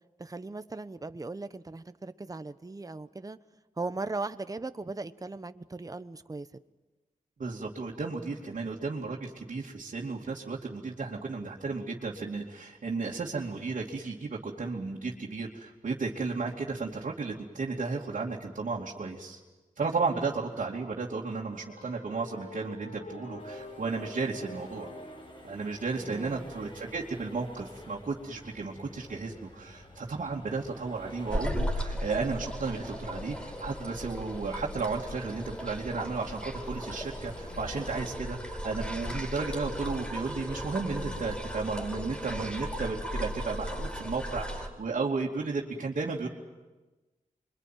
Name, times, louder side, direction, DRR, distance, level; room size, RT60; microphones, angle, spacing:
voice 1, 0.2-3.4 3.8-6.5 26.0-26.5, right 3 dB, 25° right, 11 dB, 1.0 m, -38 dB
voice 2, 7.4-19.4 19.8-24.9 25.4-46.3, right 4 dB, 65° right, -4 dB, 2.7 m, -34 dB
sound 1, 21.5-25.5, left 1 dB, 55° left, 4.1 m, -46 dB
Accelerating revving vroom, 23.4-38.0, left 1 dB, 40° left, 4.3 m, -49 dB
sound 2, 31.3-44.7, equal, 10° left, 5.1 m, -36 dB
26.5 x 23.5 x 9.3 m, 1.2 s
wide cardioid pair, 80°, 14 cm